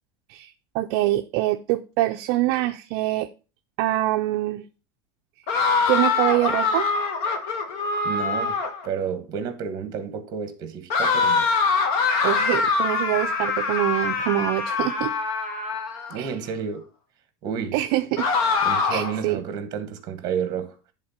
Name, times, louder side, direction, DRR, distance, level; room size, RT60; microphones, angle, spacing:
voice 1, 0.3-3.3 3.8-4.6 5.9-6.9 12.2-15.1 16.2-16.3 17.7-18.3 18.9-19.4, right 16 dB, 45° right, 0.5 m, -24 dB
sound 1, 5.5-8.9 10.9-16.2 18.2-19.2, left 4 dB, 50° left, 1.5 m, -24 dB
voice 2, 8.0-8.6 8.8-11.5 16.1-16.8 17.4-17.8 18.6-20.8, right 7 dB, 30° right, 1.3 m, -30 dB
11.0 x 3.8 x 5.6 m
supercardioid pair, 175°, 13 cm